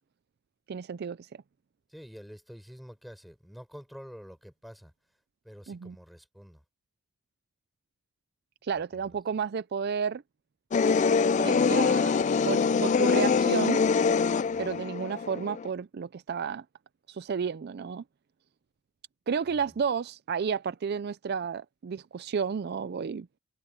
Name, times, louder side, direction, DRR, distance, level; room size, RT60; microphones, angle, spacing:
voice 1, 0.7-1.3 5.7-6.0 8.6-10.2 11.4-12.2 12.4-13.8 14.6-16.6 17.1-18.0 19.3-23.3, right 6 dB, 50° right, 0.4 m, -32 dB
voice 2, 1.9-4.9 5.4-6.6 8.7-9.2 14.5-14.8 19.4-19.6, equal, ahead, 5.6 m, -48 dB
sound 1, 10.7-15.7, left 5 dB, 35° left, 0.3 m, -24 dB
head